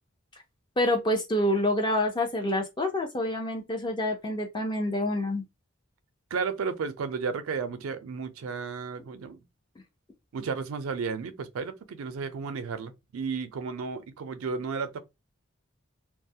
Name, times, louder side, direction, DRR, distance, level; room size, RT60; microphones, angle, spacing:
voice 1, 0.8-5.4, left 1 dB, 20° left, 0.4 m, -27 dB
voice 2, 6.3-9.4 10.3-15.0, right 5 dB, 90° right, 0.4 m, -33 dB
2.2 x 2.0 x 2.7 m
head